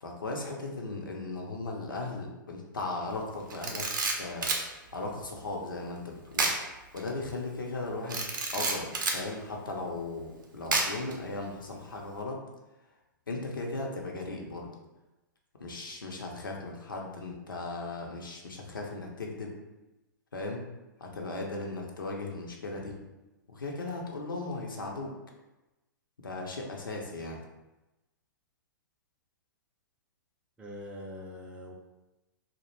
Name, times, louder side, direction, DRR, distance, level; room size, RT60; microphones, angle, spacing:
voice 1, 0.0-3.9 4.2-8.2 8.5-12.4 13.3-14.7 15.6-19.5 20.3-20.6 21.0-23.0 23.5-25.1 26.2-27.4, left 2 dB, 75° left, 0 dB, 0.5 m, -37 dB
Camera, 3.5-4.7 6.3-6.6 7.0-7.1 8.1-9.2 10.7-11.1, right 3 dB, 65° right, 0.5 m, -29 dB
voice 2, 30.6-31.7, left 1 dB, 10° right, -2 dB, 0.3 m, -43 dB
2.3 x 2.1 x 3.0 m, 1.0 s
figure-of-eight pair, 110°, 11 cm